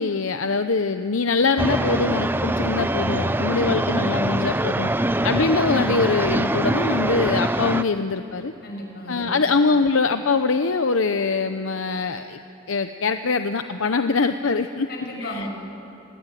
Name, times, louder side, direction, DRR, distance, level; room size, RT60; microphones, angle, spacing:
voice 1, 0.0-4.9 5.2-8.5 9.1-12.4 12.7-14.9 15.2-15.5, left 4 dB, 80° left, 8 dB, 0.8 m, -23 dB
sound 1, 1.6-7.8, right 1 dB, 10° right, 0.6 m, -23 dB
voice 2, 8.4-9.4 14.9-15.5, equal, 55° left, 1 dB, 6.8 m, -34 dB
29.0 x 21.0 x 9.2 m, 2.9 s
head